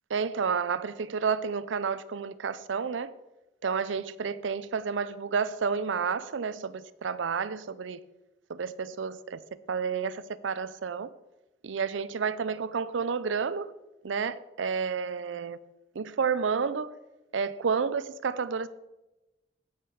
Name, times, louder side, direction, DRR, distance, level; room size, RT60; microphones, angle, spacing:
voice 1, 0.1-3.1 3.6-8.0 8.5-9.4 9.7-11.1 11.6-13.7 14.0-15.6 16.0-16.9 17.3-18.7, right 5 dB, 85° right, 0.5 m, -30 dB
9.0 x 5.7 x 6.4 m
head